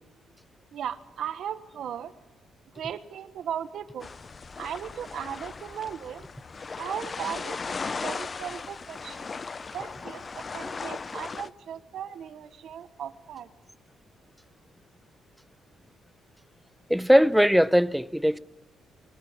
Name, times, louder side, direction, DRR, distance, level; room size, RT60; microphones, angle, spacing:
voice 1, 0.7-2.2 2.7-4.1 4.6-6.2 6.8-9.3 9.7-13.5, right 9 dB, 70° right, 1.2 m, -37 dB
sound 1, 4.0-11.5, left 4 dB, 35° left, 0.8 m, -37 dB
voice 2, 16.9-18.4, equal, ahead, 0.8 m, -20 dB
22.5 x 19.5 x 8.9 m
cardioid pair, 90°, 0 cm